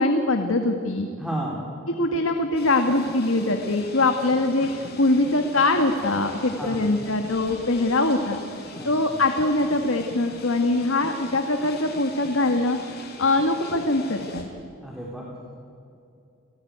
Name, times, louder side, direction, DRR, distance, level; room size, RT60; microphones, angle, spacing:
voice 1, 0.0-1.1 2.0-14.4, left 2 dB, 65° left, 5 dB, 1.7 m, -23 dB
voice 2, 1.2-1.7 6.6-6.9 8.8-9.2 14.8-15.3, right 1 dB, ahead, -3 dB, 3.2 m, -33 dB
sound 1, 2.6-14.4, left 2 dB, 50° left, 5.1 m, -41 dB
30.0 x 18.0 x 9.5 m, 2.6 s
head